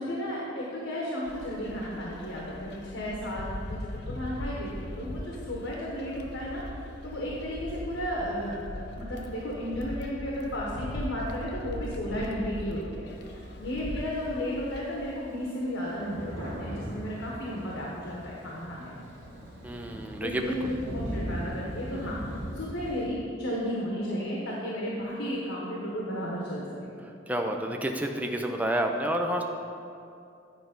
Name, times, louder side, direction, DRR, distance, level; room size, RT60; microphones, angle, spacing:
voice 1, 0.0-6.6 7.0-19.0 20.2-26.9, equal, 90° left, -4 dB, 1.2 m, -34 dB
sound 1, 1.2-15.1, left 1 dB, 60° left, 0.7 m, -40 dB
Thunder, 13.1-14.3 14.9-15.0 15.2-23.1, equal, 65° right, 2.1 m, -39 dB
voice 2, 19.6-20.7 21.9-22.1 27.0-29.4, right 1 dB, 10° right, 3 dB, 0.5 m, -30 dB
9.4 x 4.6 x 5.2 m, 2.6 s
head